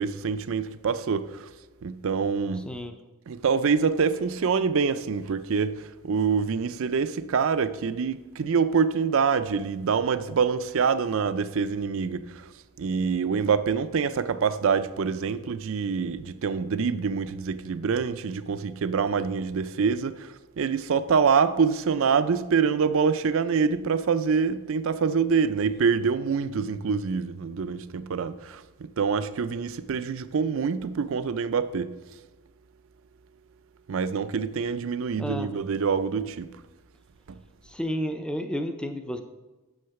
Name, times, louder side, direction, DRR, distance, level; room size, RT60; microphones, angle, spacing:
voice 1, 0.0-1.5 1.8-2.7 3.3-12.5 12.8-31.9 33.9-36.5 37.3-37.4, right 5 dB, 60° right, 0.4 m, -25 dB
voice 2, 35.2-35.5 37.7-39.2, equal, 5° left, 0.5 m, -31 dB
7.1 x 6.4 x 5.8 m
head